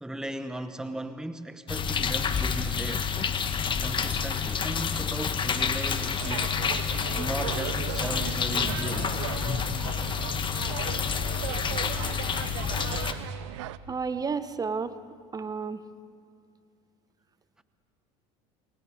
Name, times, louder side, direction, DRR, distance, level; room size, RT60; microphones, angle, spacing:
voice 1, 0.0-3.1 3.8-6.5 7.2-9.3, right 1 dB, 5° right, 0.9 m, -37 dB
sound 1, 1.7-13.1, left 6 dB, 35° left, 1.6 m, -29 dB
sound 2, 6.2-13.8, right 16 dB, 85° right, 0.6 m, -37 dB
voice 2, 13.9-15.0 15.3-15.8, right 5 dB, 25° right, 1.0 m, -31 dB
29.0 x 23.0 x 5.1 m
supercardioid pair, 90°, 15 cm